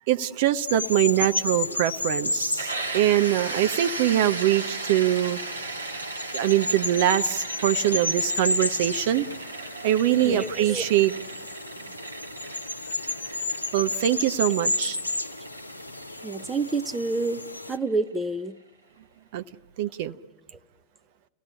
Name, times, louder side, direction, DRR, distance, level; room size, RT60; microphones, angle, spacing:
voice 1, 0.1-5.4 6.3-9.3 9.8-11.1 13.7-15.0 19.3-19.4 19.8-20.2, right 12 dB, 50° right, 0.7 m, -23 dB
sound 1, 0.7-17.8, left 2 dB, 85° left, 0.8 m, -32 dB
sound 2, 2.6-18.2, right 3 dB, 80° right, 1.9 m, -37 dB
voice 2, 10.2-10.8 16.2-17.4 17.7-18.6, right 3 dB, 10° right, 0.7 m, -28 dB
30.0 x 17.0 x 9.9 m
figure-of-eight pair, 90°, 0 cm